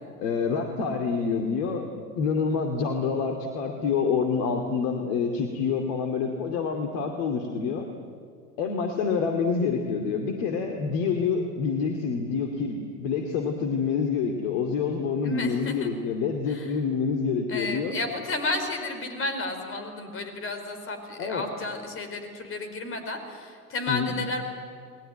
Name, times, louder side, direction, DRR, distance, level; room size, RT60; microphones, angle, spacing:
voice 1, 0.2-1.9 2.2-7.9 8.6-17.9 21.2-21.5 23.9-24.1, left 5 dB, 50° left, 4 dB, 2.5 m, -27 dB
voice 2, 15.2-16.0 16.4-16.7 17.5-24.4, left 2 dB, 25° left, 6 dB, 4.9 m, -32 dB
29.5 x 20.5 x 9.3 m, 2.2 s
figure-of-eight pair, 80°, 46 cm